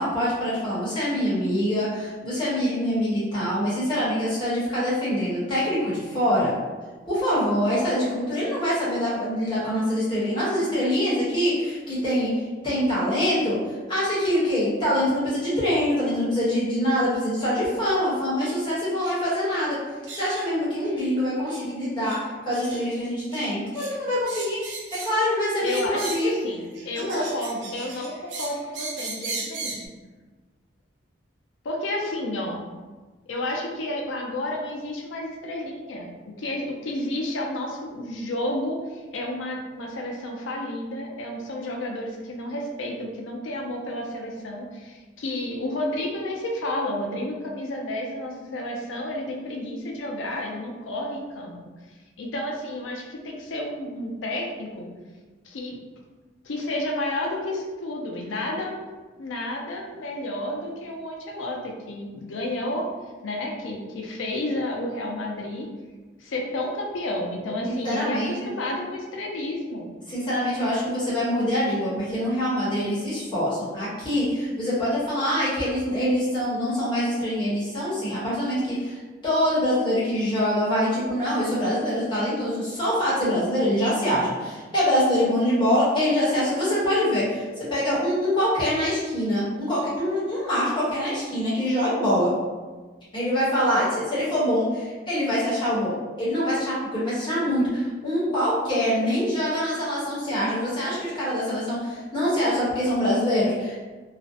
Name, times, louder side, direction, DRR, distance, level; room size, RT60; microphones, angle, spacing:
voice 1, 0.0-6.5 7.1-12.3 12.6-19.8 20.1-22.2 22.4-24.6 24.9-26.3 26.9-27.2 67.7-68.5 70.1-92.3 93.1-103.8, equal, 25° left, -9 dB, 0.9 m, -24 dB
sound 1, 18.4-18.6 19.0-19.2 19.4-19.6 20.1-20.5 20.8-21.1 21.5-21.6 22.0-22.2 22.5-22.8 23.3-23.9 24.3-25.2 25.6-26.4 26.7-29.9, right 3 dB, 75° right, 0.5 m, -37 dB
voice 2, 25.6-29.8 31.6-32.6 33.3-36.1 36.4-51.5 52.2-54.9 55.4-55.8 56.4-58.8 59.2-62.9 63.2-65.7 66.2-69.9, left 1 dB, 90° left, 0 dB, 0.5 m, -31 dB
2.4 x 2.0 x 2.6 m, 1.3 s
head